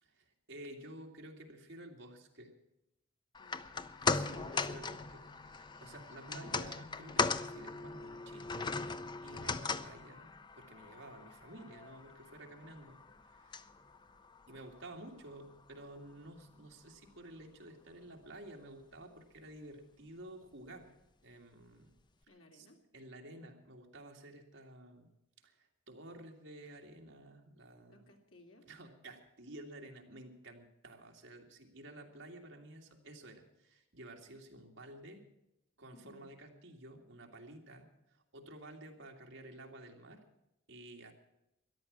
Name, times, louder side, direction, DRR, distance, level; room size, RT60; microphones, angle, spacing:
voice 1, 0.0-2.5 4.1-8.8 9.2-13.0 13.3-13.7 14.5-20.9 21.2-21.9 22.5-22.7 22.9-25.1 25.4-28.1 28.6-35.2 35.8-40.2 40.7-41.1, right 1 dB, 65° right, 2 dB, 2.3 m, -52 dB
sound 1, 3.3-15.7 16.1-16.2, left 4 dB, 20° left, 0.5 m, -39 dB
voice 2, 3.4-4.4 22.3-22.8 27.9-28.7 35.9-36.3, left 1 dB, 80° left, 2 dB, 2.7 m, -61 dB
13.5 x 11.0 x 8.6 m, 0.85 s
head